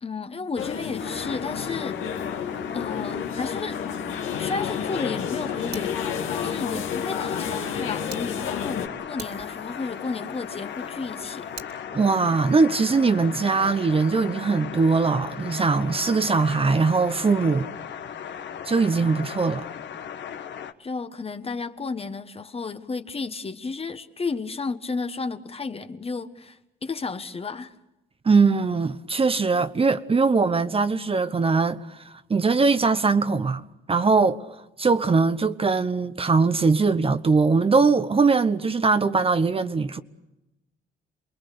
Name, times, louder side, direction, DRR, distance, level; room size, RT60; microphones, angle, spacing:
voice 1, 0.0-2.0 2.7-3.8 4.4-6.0 6.3-11.5 20.8-27.7, left 4 dB, 30° left, 1.4 m, -33 dB
sound 1, 0.5-8.9, left 7 dB, 85° left, 2.3 m, -30 dB
sound 2, 1.0-20.7, left 8 dB, 65° left, 1.4 m, -37 dB
Fire, 5.7-8.2 8.7-8.8 9.2-11.7, right 5 dB, 55° right, 2.8 m, -46 dB
voice 2, 11.9-17.7 18.7-19.6 28.2-32.0 32.3-33.6 33.9-34.4 34.8-40.0, right 4 dB, 30° right, 1.0 m, -21 dB
28.0 x 21.0 x 6.8 m
cardioid pair, 90°, 20 cm